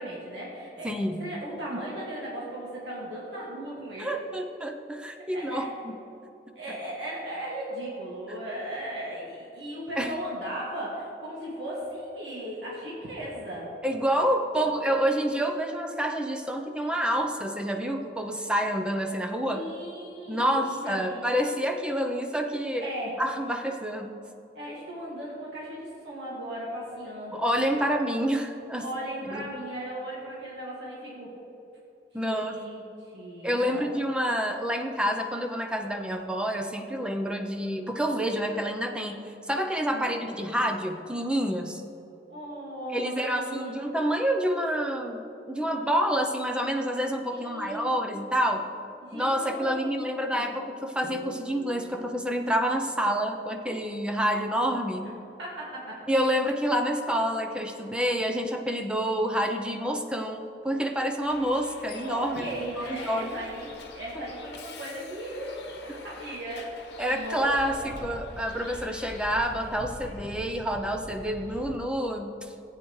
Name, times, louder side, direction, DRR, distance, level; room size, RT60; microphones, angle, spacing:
voice 1, 0.0-0.9 1.2-4.2 5.3-5.7 6.6-13.7 14.5-14.8 19.5-21.2 22.8-23.2 24.5-27.4 27.8-27.9 28.8-31.3 32.2-32.8 33.1-33.9 39.9-40.2 42.3-44.0 47.3-48.0 49.0-50.6 55.4-56.0 62.0-66.7 67.1-67.4 67.8-68.1, right 1 dB, 80° right, -6 dB, 2.1 m, -37 dB
voice 2, 0.8-1.2 4.0-5.9 10.0-10.1 13.8-19.6 20.3-22.9 23.2-24.1 27.3-28.8 29.2-29.5 32.1-32.5 33.4-39.2 39.5-41.8 42.9-48.7 49.1-55.1 56.1-62.5 62.8-63.4 64.2-64.3 65.9-66.0 67.0-72.5, equal, 5° right, 4 dB, 0.5 m, -28 dB
sound 1, 51.0-54.5, right 2 dB, 50° right, 1.1 m, -47 dB
Bus, 61.2-71.8, left 2 dB, 70° left, 1.0 m, -45 dB
15.0 x 8.9 x 3.1 m, 2.9 s
head